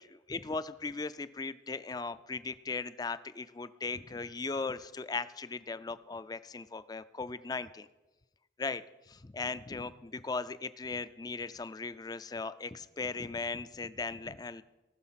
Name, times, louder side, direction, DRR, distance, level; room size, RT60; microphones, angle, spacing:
voice 1, 0.0-7.9 8.6-14.6, left 4 dB, 20° left, 14 dB, 0.3 m, -38 dB
18.5 x 6.4 x 5.7 m, 1.1 s
head